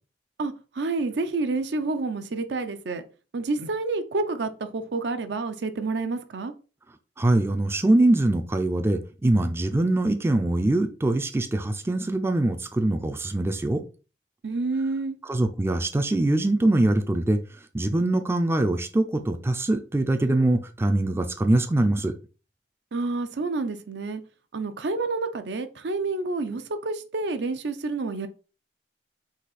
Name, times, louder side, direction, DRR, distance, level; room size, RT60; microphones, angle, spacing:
voice 1, 0.4-3.0 3.3-6.5 14.4-15.2 22.9-24.2 24.5-28.3, right 3 dB, 70° right, 0.5 m, -29 dB
voice 2, 7.2-13.8 15.3-17.4 17.7-22.1, right 1 dB, 15° right, 0.4 m, -23 dB
4.0 x 2.7 x 4.0 m
head